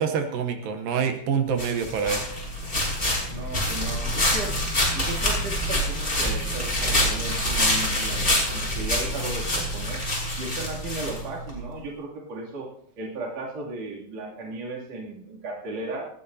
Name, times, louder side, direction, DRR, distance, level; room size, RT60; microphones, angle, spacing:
voice 1, 0.0-2.3, right 7 dB, 75° right, 6 dB, 2.5 m, -26 dB
sound 1, 1.6-11.6, left 1 dB, 15° left, 5.1 m, -26 dB
voice 2, 3.3-10.0 10.4-12.7 13.0-16.1, right 2 dB, 45° right, -3 dB, 3.7 m, -35 dB
19.5 x 15.5 x 2.7 m, 0.69 s
omnidirectional pair, 4.3 m